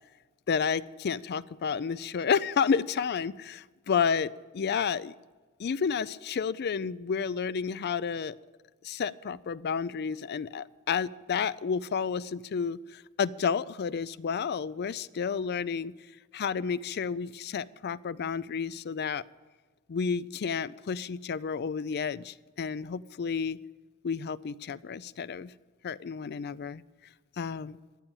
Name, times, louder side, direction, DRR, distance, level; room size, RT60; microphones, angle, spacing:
voice 1, 0.5-5.1 5.6-8.4 8.8-15.9 16.3-19.2 19.9-23.6 24.0-25.5 25.8-26.8 27.4-27.8, left 6 dB, 50° left, 19 dB, 0.4 m, -31 dB
15.0 x 10.0 x 8.9 m, 1.3 s
head